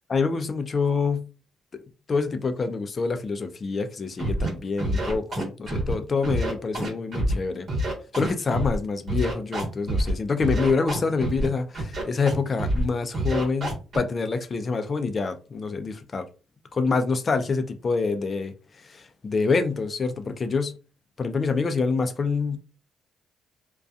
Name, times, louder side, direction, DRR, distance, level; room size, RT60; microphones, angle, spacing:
voice 1, 0.1-1.3 1.7-1.8 2.1-7.7 8.1-16.3 16.7-20.8 21.2-22.6, left 4 dB, 40° left, 0.4 m, -26 dB
Scratching (performance technique), 4.2-4.5 4.8-5.9 6.2-7.3 7.7-8.8 9.1-10.1 10.4-11.5 11.7-12.3 12.6-12.8 13.1-14.0, right 1 dB, 50° right, 1.2 m, -26 dB
2.5 x 2.2 x 2.3 m
cardioid pair, 90°, 0 cm